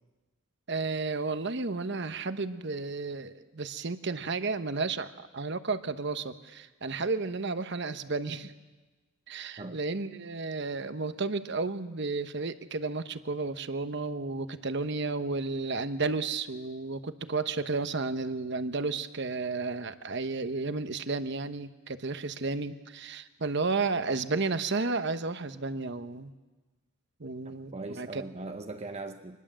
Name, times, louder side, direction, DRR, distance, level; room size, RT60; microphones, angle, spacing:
voice 1, 0.7-8.5 9.3-26.3 27.2-28.2, right 3 dB, 55° right, 11 dB, 1.0 m, -32 dB
voice 2, 27.4-29.4, right 2 dB, 30° right, 6 dB, 0.8 m, -40 dB
25.5 x 20.5 x 7.6 m, 1.2 s
head